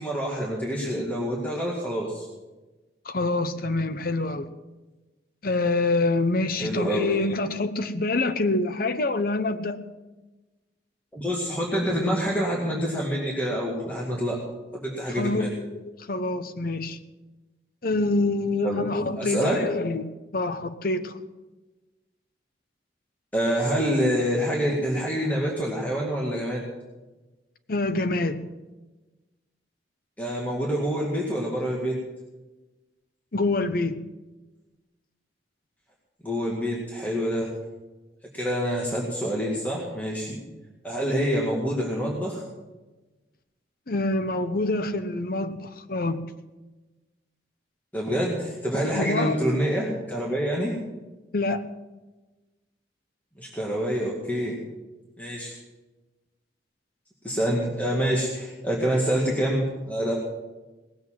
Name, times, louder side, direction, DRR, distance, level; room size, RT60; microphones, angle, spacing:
voice 1, 0.0-2.3 6.6-7.1 11.1-14.4 14.7-15.5 18.6-18.8 19.2-19.6 23.3-26.6 30.2-32.0 36.2-37.5 38.3-40.4 40.8-42.4 47.9-50.7 53.4-54.6 55.2-55.6 57.2-60.1, equal, 10° left, -3 dB, 2.1 m, -26 dB
voice 2, 3.0-4.5 5.4-9.8 15.1-17.0 17.8-21.2 27.7-28.4 33.3-34.0 43.9-46.2 48.9-49.4 51.3-51.7, left 2 dB, 55° left, 10 dB, 0.9 m, -26 dB
19.0 x 7.7 x 7.6 m, 1.1 s
head